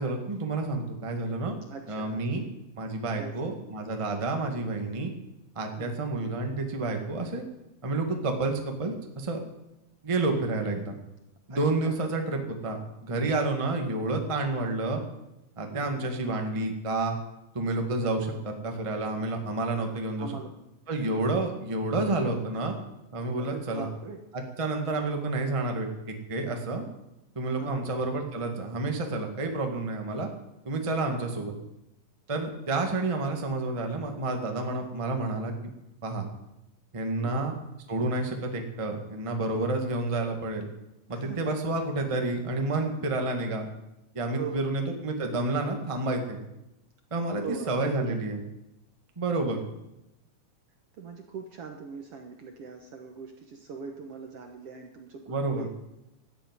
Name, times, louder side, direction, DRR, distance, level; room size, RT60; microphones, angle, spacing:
voice 1, 0.0-1.6 1.9-2.5 2.8-5.1 5.5-7.4 7.8-9.4 10.0-10.9 11.5-15.0 15.6-17.2 17.5-20.3 20.9-22.7 23.1-23.9 24.6-26.8 27.3-30.3 30.6-31.5 32.3-35.5 36.0-36.3 36.9-37.5 37.9-40.7 41.1-43.7 44.1-46.4 47.1-48.4 49.2-49.6 55.3-55.6, right 2 dB, 15° right, 3 dB, 1.1 m, -29 dB
voice 2, 1.7-2.2 3.2-3.5 5.8-6.2 11.5-12.0 15.7-16.1 20.2-20.5 20.9-21.3 23.4-24.2 27.6-27.9 30.8-31.2 37.2-37.5 41.1-41.4 44.3-44.7 47.4-48.3 49.5-49.7 51.0-55.7, right 5 dB, 60° right, 4 dB, 1.7 m, -41 dB
13.5 x 8.4 x 9.7 m, 0.91 s
omnidirectional pair, 3.8 m